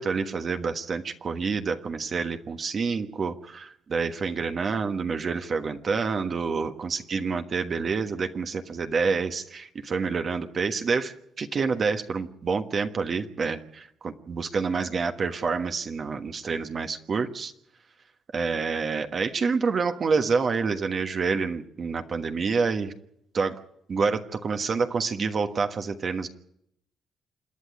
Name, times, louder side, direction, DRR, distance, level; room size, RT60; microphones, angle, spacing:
voice 1, 0.0-17.5 18.3-22.9 23.3-23.6 23.9-26.3, right 5 dB, 45° right, 7 dB, 1.3 m, -28 dB
27.5 x 10.0 x 9.6 m, 0.75 s
cardioid pair, 90°, 0 cm